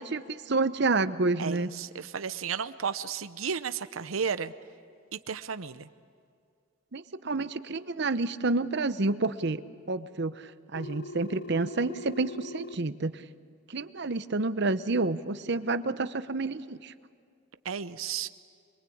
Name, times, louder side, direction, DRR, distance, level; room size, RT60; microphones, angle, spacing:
voice 1, 0.1-1.7 6.9-9.6 9.9-13.2 13.7-16.9, right 3 dB, 55° right, 12 dB, 0.9 m, -29 dB
voice 2, 1.4-4.5 5.1-5.9 17.6-18.3, right 6 dB, 90° right, 12 dB, 0.8 m, -33 dB
Telephone, 10.7-12.7, left 2 dB, 55° left, 0.6 m, -41 dB
27.0 x 22.5 x 8.6 m, 2.3 s
head